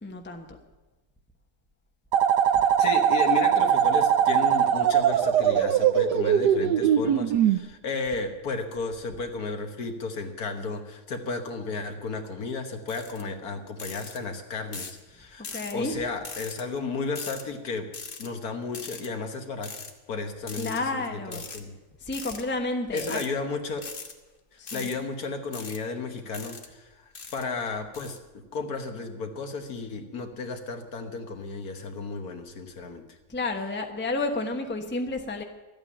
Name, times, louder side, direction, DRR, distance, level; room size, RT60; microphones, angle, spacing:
voice 1, 0.0-0.5 15.5-15.9 20.6-21.4 22.0-23.2 24.6-24.9 33.3-35.4, left 2 dB, 10° left, 4 dB, 1.0 m, -31 dB
sound 1, 2.1-7.6, right 9 dB, 90° right, 1.3 m, -21 dB
voice 2, 2.6-17.9 18.2-19.7 20.1-21.7 22.9-23.9 24.5-33.2, left 4 dB, 65° left, 5 dB, 1.8 m, -33 dB
sound 2, 12.9-13.2 13.8-14.2 14.7-15.0 15.4-15.7 16.2-16.6 17.2-17.4 17.9-18.3 18.7-19.1 19.6-19.9 20.5-20.8 21.3-21.6 22.1-22.4 22.9-23.3 23.8-24.1 24.7-25.0 25.5-25.8 26.3-26.7 27.2-27.4 27.9-28.2, left 4 dB, 35° left, 1.3 m, -40 dB
13.0 x 8.9 x 10.0 m, 1.2 s
omnidirectional pair, 1.7 m